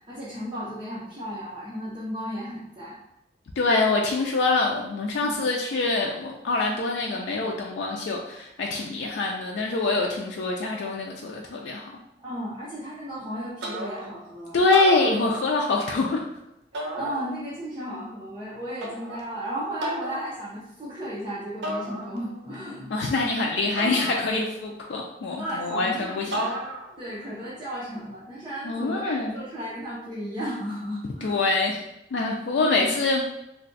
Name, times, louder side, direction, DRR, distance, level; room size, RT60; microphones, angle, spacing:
voice 1, 0.0-3.0 5.2-5.4 12.2-14.6 16.7-22.9 25.4-26.6 27.0-31.4 32.6-33.0, equal, 25° right, -9 dB, 0.7 m, -34 dB
voice 2, 3.6-11.9 14.5-16.2 22.9-26.5 28.6-29.4 31.2-31.8 32.1-33.2, left 3 dB, 85° left, -1 dB, 0.4 m, -25 dB
sound 1, 13.6-14.2 14.6-15.8 16.7-17.6 18.8-19.3 19.8-20.3 21.6-22.5 23.8-24.7 26.3-27.1, right 1 dB, 85° right, 0.6 m, -34 dB
2.5 x 2.2 x 3.9 m, 0.86 s
head